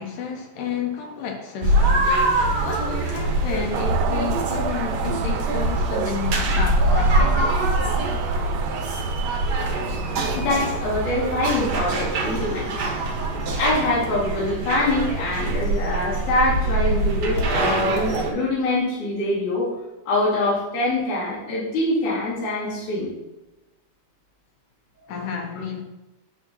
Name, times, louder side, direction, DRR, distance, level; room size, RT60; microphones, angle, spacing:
voice 1, 0.0-7.4 25.1-25.8, left 6 dB, 80° left, 2.1 m, -31 dB
sound 1, 1.6-18.3, right 2 dB, 60° right, 2.0 m, -23 dB
sound 2, 3.7-13.9, right 10 dB, 85° right, 2.4 m, -34 dB
voice 2, 10.3-13.0 13.5-19.7 20.0-23.1 25.0-25.1, left 2 dB, 55° left, 3.3 m, -24 dB
8.9 x 6.9 x 2.8 m
omnidirectional pair, 4.2 m